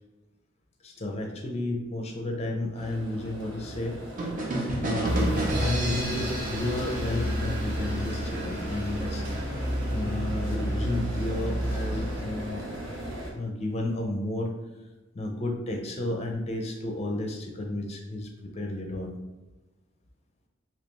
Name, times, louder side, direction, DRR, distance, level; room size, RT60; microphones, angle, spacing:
voice 1, 0.8-4.0 4.8-5.2 5.6-12.6 13.3-14.5 15.1-19.2, left 1 dB, 30° left, 2 dB, 0.5 m, -32 dB
sound 1, 2.7-13.3, right 1 dB, 80° right, 0.9 m, -38 dB
sound 2, 4.2-7.9, right 2 dB, 40° right, 0.6 m, -31 dB
sound 3, 5.0-12.2, equal, 65° right, 1.2 m, -31 dB
3.2 x 2.8 x 3.1 m, 1.1 s
head